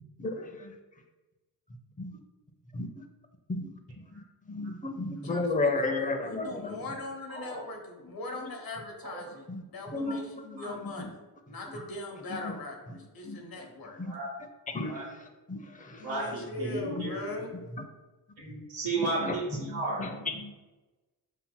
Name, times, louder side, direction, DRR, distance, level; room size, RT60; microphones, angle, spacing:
voice 1, 0.2-0.7 2.0-2.2 2.7-3.0 3.5-3.7 4.1-4.2 4.5-6.8 9.5-9.6 9.9-10.2 10.5-11.1 13.2-13.4 14.0-14.1 14.7-15.0 15.5-16.1 16.9-17.0 19.2-20.5, left 2 dB, 20° left, 5 dB, 0.5 m, -33 dB
voice 2, 5.2-5.7 6.2-9.4 9.7-11.2 11.5-14.0 16.0-17.5, left 2 dB, 60° left, 2 dB, 1.0 m, -40 dB
voice 3, 7.3-7.6 9.1-9.2 10.1-10.2 10.6-10.7 11.7-11.8 14.0-14.3 14.8-15.1 16.0-17.4 18.5-20.0, right 2 dB, 80° right, -8 dB, 1.2 m, -34 dB
5.5 x 2.7 x 2.2 m, 1.2 s
cardioid pair, 75°, 39 cm